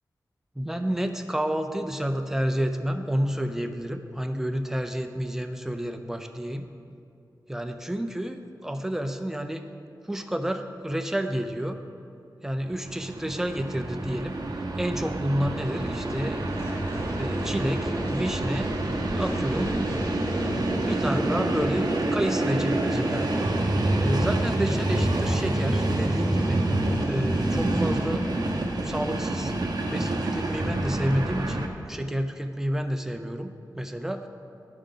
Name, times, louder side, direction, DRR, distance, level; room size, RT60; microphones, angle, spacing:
voice 1, 0.6-6.7 7.5-9.7 10.0-11.8 12.4-14.4 14.8-16.5 17.2-18.7 19.1-20.1 20.9-23.3 24.0-26.7 27.1-34.3, equal, 5° right, 6 dB, 0.5 m, -30 dB
Train, 12.7-31.7, right 2 dB, 65° right, 0.8 m, -27 dB
sound 1, 15.6-29.5, equal, 35° left, 1.4 m, -36 dB
11.5 x 4.9 x 3.8 m, 2.6 s
wide cardioid pair, 100°, 7 cm